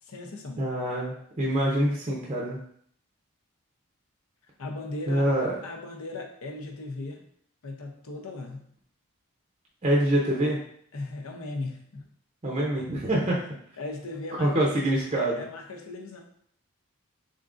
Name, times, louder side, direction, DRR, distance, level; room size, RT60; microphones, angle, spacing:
voice 1, 0.0-0.7 4.6-5.3 5.6-7.2 7.6-8.7 10.9-12.1 13.8-14.7 15.2-16.2, left 2 dB, 70° left, 2 dB, 0.6 m, -37 dB
voice 2, 0.6-2.6 5.1-5.5 9.8-10.6 12.4-13.4 14.4-15.4, right 1 dB, 30° right, -3 dB, 0.6 m, -25 dB
3.8 x 3.6 x 2.5 m, 0.64 s
head